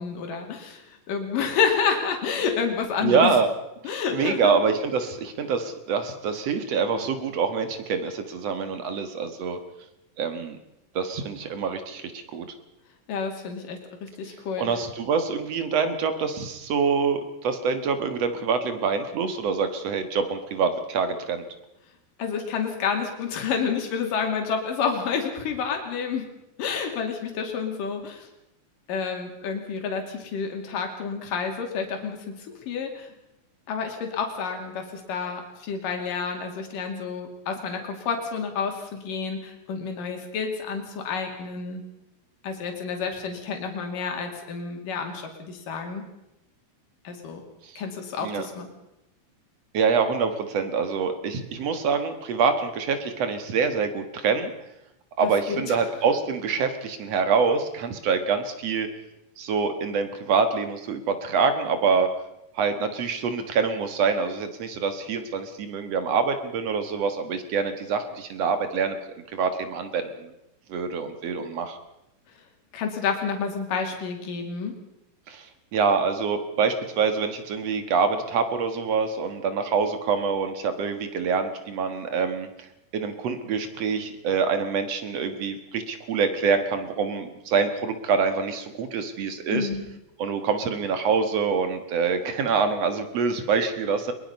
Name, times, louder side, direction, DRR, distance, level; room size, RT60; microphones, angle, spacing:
voice 1, 0.0-3.4 3.8-4.6 13.1-14.7 22.2-26.3 26.6-28.3 28.9-33.1 33.7-41.8 42.4-46.0 47.0-47.4 47.8-48.7 55.2-55.8 72.7-74.8 89.5-89.8, left 6 dB, 70° left, 3 dB, 4.1 m, -29 dB
voice 2, 3.0-3.5 3.8-9.6 10.2-10.6 10.9-12.4 14.6-21.4 47.6-47.8 48.2-48.5 49.7-54.5 55.2-58.9 59.4-62.1 62.5-69.0 69.3-70.3 70.7-71.8 75.3-75.5 75.7-82.5 82.9-89.7 90.2-94.1, right 5 dB, 55° right, 9 dB, 2.3 m, -25 dB
22.0 x 21.5 x 5.4 m, 0.90 s
omnidirectional pair, 4.1 m